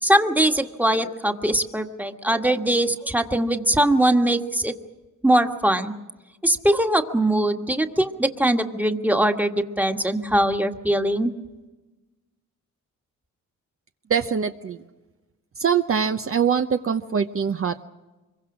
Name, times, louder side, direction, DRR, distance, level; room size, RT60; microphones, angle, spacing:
voice 1, 0.0-4.7 5.2-5.9 6.4-11.3, right 1 dB, 5° right, 6 dB, 1.6 m, -21 dB
voice 2, 14.1-14.8 15.6-17.8, right 7 dB, 45° right, 7 dB, 0.8 m, -23 dB
25.0 x 22.5 x 6.2 m, 1.2 s
cardioid pair, 85°, 32 cm